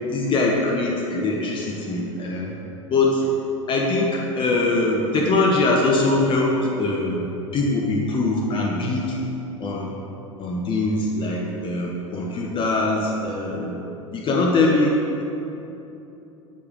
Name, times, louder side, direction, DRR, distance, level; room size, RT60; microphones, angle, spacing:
voice 1, 0.1-2.5 2.9-3.3 3.7-7.2 7.5-9.2 9.6-9.9 10.4-13.7 14.1-15.2, left 2 dB, 30° left, -1 dB, 1.0 m, -22 dB
9.0 x 4.9 x 5.1 m, 2.9 s
figure-of-eight pair, 85°, 17 cm